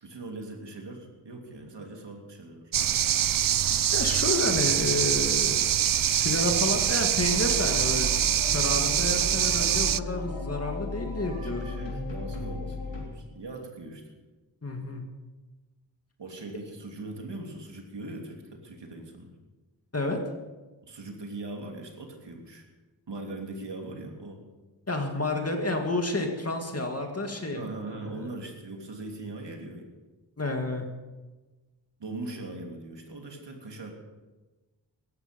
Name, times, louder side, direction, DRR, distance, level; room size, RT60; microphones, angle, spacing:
voice 1, 0.0-2.7 11.4-14.1 16.2-19.3 20.8-22.7 23.1-24.4 27.5-29.9 32.0-34.0, right 2 dB, 65° right, 2 dB, 3.2 m, -40 dB
sound 1, 2.7-10.0, right 10 dB, 50° right, 0.5 m, -24 dB
voice 2, 3.9-5.6 6.0-8.1 8.5-11.8 14.6-15.0 19.9-20.2 24.9-27.7 28.1-28.3 30.4-30.9, left 2 dB, 30° left, 3 dB, 2.2 m, -30 dB
sound 2, 7.2-13.0, left 3 dB, 75° left, 3.4 m, -36 dB
17.5 x 14.0 x 5.4 m, 1.2 s
wide cardioid pair, 80°, 45 cm